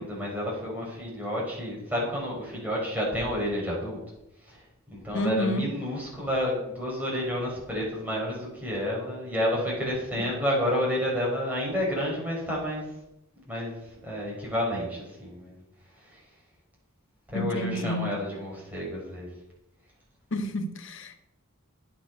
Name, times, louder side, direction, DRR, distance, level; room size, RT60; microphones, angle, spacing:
voice 1, 0.0-4.0 4.4-12.9 13.5-15.6 16.0-16.2 17.3-19.3, equal, 10° right, 4.9 m, -30 dB
voice 2, 5.1-5.6 17.3-18.1 20.3-21.2, left 1 dB, 60° left, 1.2 m, -29 dB
10.0 x 9.1 x 5.4 m
head